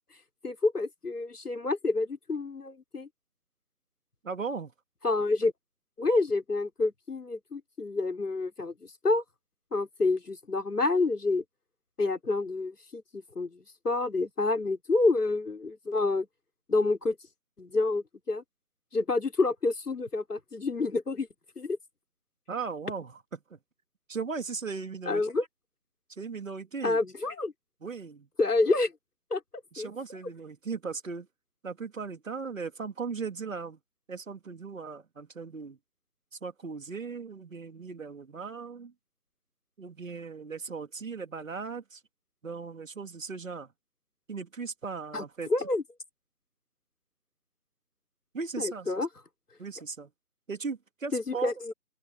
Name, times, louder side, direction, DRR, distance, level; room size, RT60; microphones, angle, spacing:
voice 1, 0.4-3.1 5.0-5.5 6.0-9.2 9.7-11.4 12.0-16.3 16.7-17.2 17.6-18.4 18.9-21.3 21.6-21.8 25.1-25.4 26.8-27.5 28.4-28.9 29.3-29.4 29.8-29.9 45.1-45.2 45.5-45.8 48.6-49.1 51.1-51.7, left 3 dB, 90° left, 4.2 m, -28 dB
voice 2, 4.2-4.7 22.5-23.6 24.1-25.2 26.1-27.0 27.8-28.3 29.7-31.3 31.6-33.8 34.1-35.8 36.4-38.9 39.8-42.0 42.4-43.7 44.3-45.7 48.3-49.1 49.6-50.1 50.5-51.5, right 5 dB, 60° right, 2.6 m, -37 dB
open air
figure-of-eight pair, 165°, 45 cm